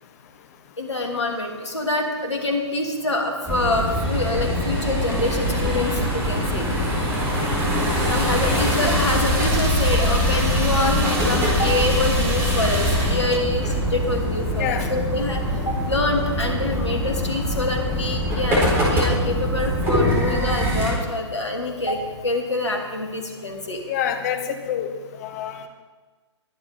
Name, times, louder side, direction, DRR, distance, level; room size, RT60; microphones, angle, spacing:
voice 1, 0.8-6.7 8.1-23.8, left 2 dB, 70° left, 2 dB, 2.9 m, -26 dB
sound 1, 3.5-20.9, equal, 15° right, 3.7 m, -23 dB
voice 2, 8.4-9.0 14.6-14.9 23.9-24.9 25.2-25.7, left 9 dB, 35° left, 7 dB, 1.4 m, -28 dB
21.0 x 9.0 x 4.3 m, 1.3 s
figure-of-eight pair, 125°, 15 cm